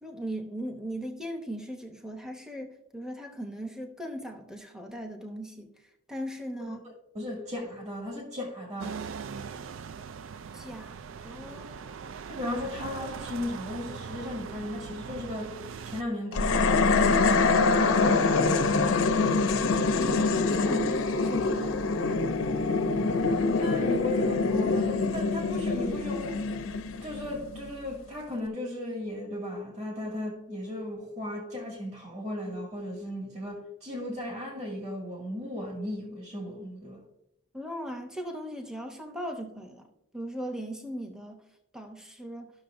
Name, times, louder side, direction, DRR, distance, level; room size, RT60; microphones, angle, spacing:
voice 1, 0.0-5.7 6.1-6.8 10.5-10.9 11.2-12.0 19.7-20.2 20.5-22.0 37.5-39.9 40.1-41.4 41.7-42.5, right 1 dB, 5° right, 0.8 m, -38 dB
voice 2, 7.1-9.0 12.3-15.6 15.8-17.4 17.7-18.7 23.4-26.4 27.0-37.0, left 1 dB, 35° right, 2.2 m, -36 dB
sound 1, 8.8-16.0, right 6 dB, 65° right, 0.4 m, -40 dB
sound 2, 16.3-27.7, left 3 dB, 85° left, 0.7 m, -25 dB
13.0 x 6.3 x 2.6 m
head